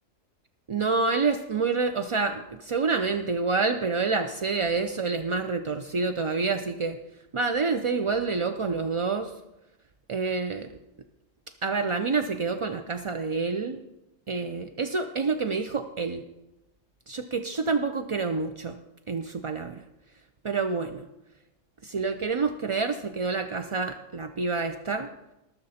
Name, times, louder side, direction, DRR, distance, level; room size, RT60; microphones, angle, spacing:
voice 1, 0.7-7.0 7.3-9.3 10.1-10.8 11.6-13.8 14.3-16.2 17.1-18.8 19.1-19.8 20.4-21.0 21.8-25.1, right 4 dB, 55° right, 6 dB, 0.3 m, -28 dB
19.5 x 6.5 x 4.2 m, 0.93 s
omnidirectional pair, 1.3 m